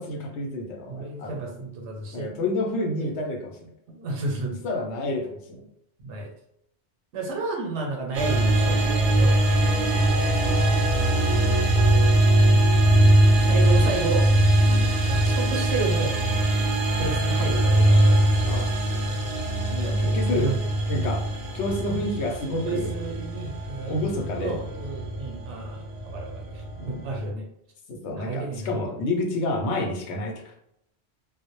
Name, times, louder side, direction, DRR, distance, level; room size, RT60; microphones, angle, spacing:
voice 1, 0.0-1.4 2.1-3.7 4.6-5.6 9.5-9.8 14.7-14.9 18.4-18.7 19.7-20.5 20.9-21.2 21.5-22.9 23.9-24.6 26.8-27.0 27.9-30.4, left 2 dB, 80° left, 2 dB, 0.8 m, -29 dB
voice 2, 0.9-2.3 3.0-3.1 3.9-4.6 6.0-6.3 7.1-9.4 9.8-10.3 12.3-13.0 13.4-14.3 15.1-16.2 16.9-18.6 19.8-20.5 22.6-24.0 24.3-27.4 28.1-28.8, right 3 dB, 90° right, 0 dB, 0.9 m, -32 dB
sound 1, 8.1-27.3, right 1 dB, 60° right, 0.6 m, -21 dB
2.1 x 2.0 x 2.9 m, 0.76 s
omnidirectional pair, 1.1 m